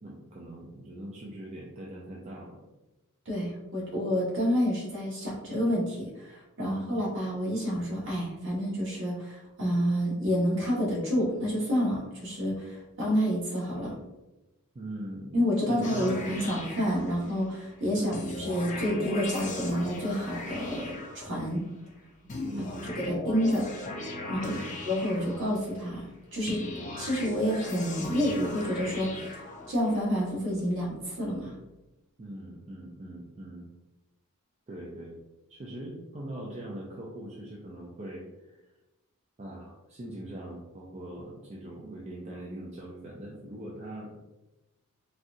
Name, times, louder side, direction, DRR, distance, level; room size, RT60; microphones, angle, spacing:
voice 1, 0.0-2.6 6.6-6.9 14.7-15.3 15.7-16.3 17.9-18.3 22.2-23.0 24.4-24.8 32.2-33.7 34.7-35.2 35.5-38.6 39.4-44.2, right 1 dB, 30° right, -3 dB, 0.4 m, -41 dB
voice 2, 3.2-13.9 15.3-21.6 22.8-23.7 24.3-24.6 24.9-26.0 26.3-26.6 27.0-29.3 29.7-31.5, equal, 60° right, -6 dB, 1.4 m, -29 dB
sound 1, 15.8-17.6 18.1-21.7 22.3-25.9 26.5-30.0, left 2 dB, 35° left, 0.5 m, -38 dB
4.1 x 2.4 x 2.6 m, 1.0 s
head